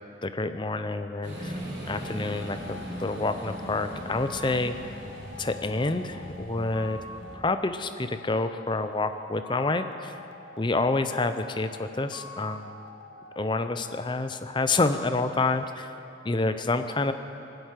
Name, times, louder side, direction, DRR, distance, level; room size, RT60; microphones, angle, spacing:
voice 1, 0.2-1.6 1.9-4.8 5.4-7.0 7.3-10.2 10.6-12.8 13.4-15.9 16.2-17.1, left 3 dB, 25° left, 9 dB, 0.6 m, -28 dB
sound 1, 1.2-7.4, right 1 dB, 65° right, 4.1 m, -39 dB
sound 2, 1.9-16.3, left 3 dB, 80° left, 1.0 m, -46 dB
19.0 x 8.1 x 9.1 m, 2.9 s
head